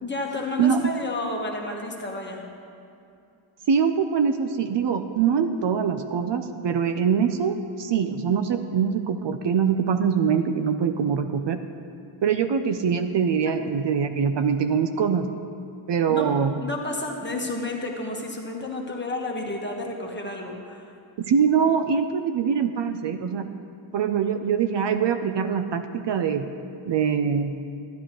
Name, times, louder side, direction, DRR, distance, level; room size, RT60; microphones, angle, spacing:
voice 1, 0.0-2.4 16.1-16.3 16.6-20.8, left 2 dB, 20° left, 0 dB, 1.3 m, -31 dB
voice 2, 0.6-0.9 3.7-11.6 12.2-15.3 15.9-16.6 21.2-23.5 23.9-26.4 26.9-27.6, right 7 dB, 60° right, 8 dB, 0.6 m, -23 dB
12.5 x 10.5 x 3.0 m, 2.5 s
cardioid pair, 85°, 49 cm